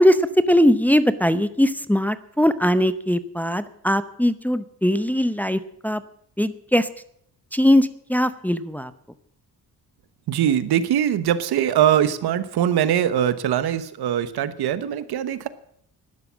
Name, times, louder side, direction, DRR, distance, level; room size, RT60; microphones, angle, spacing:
voice 1, 0.0-6.0 6.4-6.9 7.5-8.9, equal, 5° left, 12 dB, 0.7 m, -20 dB
voice 2, 10.3-15.5, right 10 dB, 80° right, 14 dB, 1.1 m, -22 dB
12.0 x 11.0 x 7.4 m, 0.67 s
cardioid pair, 105°, 38 cm